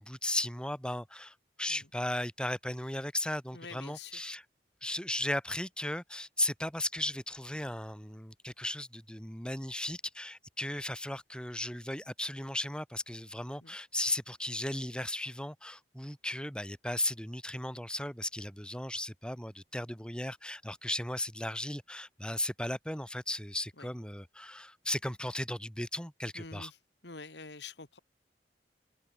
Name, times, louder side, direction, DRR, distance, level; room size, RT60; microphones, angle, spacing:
voice 1, 0.0-4.4 4.8-26.7, left 1 dB, 5° left, 3.9 m, -36 dB
voice 2, 3.5-4.2 13.6-13.8 23.8-23.9 26.3-26.8 27.0-28.0, left 4 dB, 80° left, 2.7 m, -47 dB
head